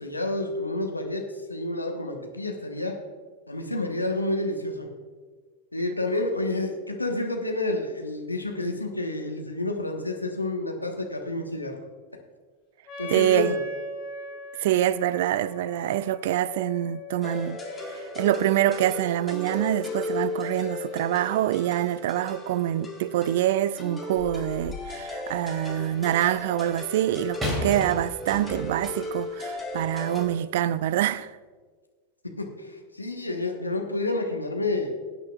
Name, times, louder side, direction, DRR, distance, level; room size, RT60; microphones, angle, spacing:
voice 1, 0.0-3.0 3.5-4.9 5.7-11.8 13.0-13.6 32.4-34.9, left 2 dB, 85° left, 1.2 m, -29 dB
Wind instrument woodwind instrument, 12.9-18.5, left 2 dB, 35° left, 2.4 m, -40 dB
voice 2, 13.1-13.6 14.6-17.6 17.9-31.3, right 12 dB, 55° right, 0.3 m, -25 dB
sound 1, 17.2-30.3, left 2 dB, 15° left, 1.7 m, -36 dB
sound 2, 24.2-25.0 27.4-28.9 29.7-29.9, left 1 dB, 10° right, 3.0 m, -34 dB
18.0 x 9.0 x 2.4 m
figure-of-eight pair, 90°, 0 cm